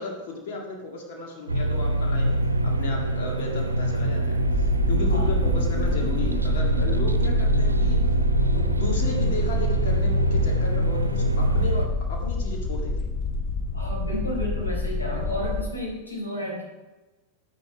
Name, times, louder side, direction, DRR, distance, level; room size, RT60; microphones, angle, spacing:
voice 1, 0.0-2.3 2.6-8.0 8.5-13.1, left 2 dB, 50° left, 0 dB, 2.0 m, -34 dB
sound 1, 1.5-11.9, right 1 dB, 80° right, 0.8 m, -24 dB
sound 2, 4.4-15.6, left 3 dB, 35° left, 1.5 m, -27 dB
voice 2, 13.7-16.6, left 1 dB, 80° left, -3 dB, 4.3 m, -32 dB
10.5 x 9.8 x 4.9 m, 1.1 s
figure-of-eight pair, 90°, 0 cm